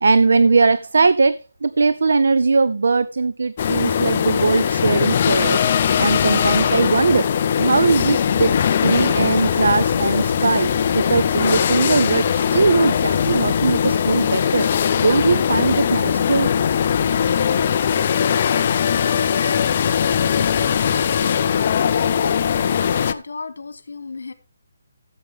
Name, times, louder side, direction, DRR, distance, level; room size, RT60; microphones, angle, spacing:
voice 1, 0.0-5.7 6.0-7.3 7.6-8.5 8.8-14.7 15.0-16.5, right 4 dB, 60° right, 0.5 m, -19 dB
sound 1, 3.6-23.1, left 8 dB, 25° left, 0.5 m, -20 dB
sound 2, 9.9-16.0, equal, 25° right, 2.3 m, -41 dB
voice 2, 19.4-24.3, left 4 dB, 65° left, 2.6 m, -35 dB
15.5 x 7.5 x 3.6 m
hypercardioid pair, 180°, 0 cm